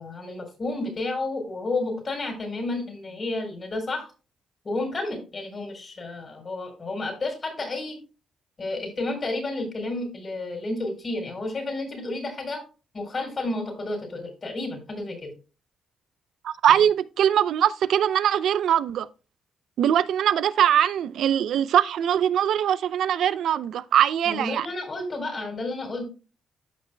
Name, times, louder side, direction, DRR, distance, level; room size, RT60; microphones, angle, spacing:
voice 1, 0.0-4.1 4.6-8.0 8.6-12.6 12.9-15.3 16.7-16.8 24.3-26.0, left 2 dB, 40° left, 4.1 m, -31 dB
voice 2, 16.4-19.1 19.8-24.7, right 10 dB, 75° right, 0.5 m, -22 dB
14.0 x 5.8 x 2.2 m
cardioid pair, 75°, 0 cm